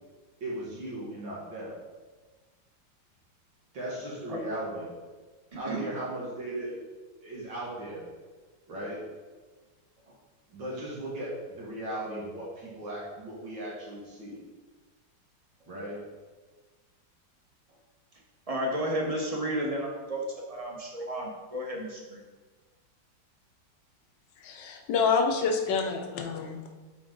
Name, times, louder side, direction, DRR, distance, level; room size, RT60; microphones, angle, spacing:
voice 1, 0.4-1.7 3.7-5.0 5.6-6.8 7.2-8.0 8.7-9.0 10.5-14.4 15.7-16.0, right 1 dB, 75° right, -6 dB, 2.6 m, -37 dB
voice 2, 18.5-22.2, right 1 dB, 20° right, -1 dB, 1.2 m, -32 dB
voice 3, 24.4-26.7, left 5 dB, 70° left, 3 dB, 1.5 m, -27 dB
12.5 x 4.5 x 3.9 m, 1.4 s
omnidirectional pair, 2.1 m